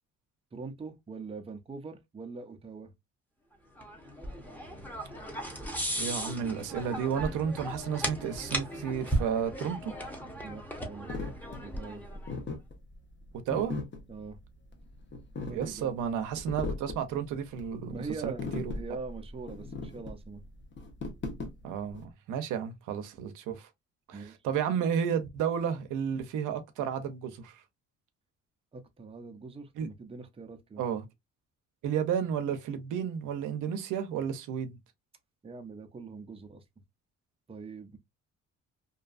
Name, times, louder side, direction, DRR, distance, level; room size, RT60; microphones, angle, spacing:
voice 1, 0.5-2.9 10.4-11.1 11.6-12.0 14.1-14.4 15.5-16.0 17.9-18.5 18.7-20.4 24.1-24.4 28.7-30.8 35.4-36.6 37.5-38.0, right 4 dB, 20° right, 0.5 m, -42 dB
sound 1, 3.8-12.3, right 1 dB, 5° left, 0.8 m, -36 dB
voice 2, 6.0-9.9 13.5-13.7 15.5-18.6 21.6-23.7 24.1-27.6 29.8-29.9 30.8-31.1 31.8-34.8, right 8 dB, 85° right, 0.6 m, -32 dB
sound 2, 11.1-22.0, left 3 dB, 40° left, 0.8 m, -39 dB
2.6 x 2.3 x 2.4 m
cardioid pair, 90°, 30 cm